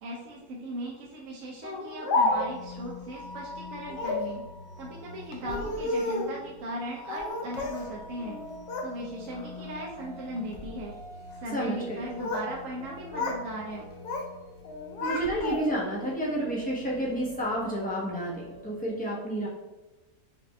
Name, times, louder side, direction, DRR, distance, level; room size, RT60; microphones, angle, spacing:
voice 1, 0.0-4.4 4.8-8.4 8.8-11.0 11.3-13.9, right 1 dB, 60° right, -3 dB, 0.9 m, -38 dB
Speech, 1.6-2.7 3.9-4.3 5.3-6.4 7.1-7.9 8.2-8.9 9.3-9.7 10.4-10.7 11.8-12.5 12.8-13.4 13.7-14.3 14.6-15.9, left 2 dB, 75° left, 1.2 m, -31 dB
sound 1, 2.3-18.9, left 2 dB, 60° left, 0.9 m, -46 dB
voice 2, 11.5-12.1 15.0-19.5, right 1 dB, 5° left, -5 dB, 0.8 m, -30 dB
5.0 x 2.5 x 3.2 m, 1.1 s
omnidirectional pair, 1.8 m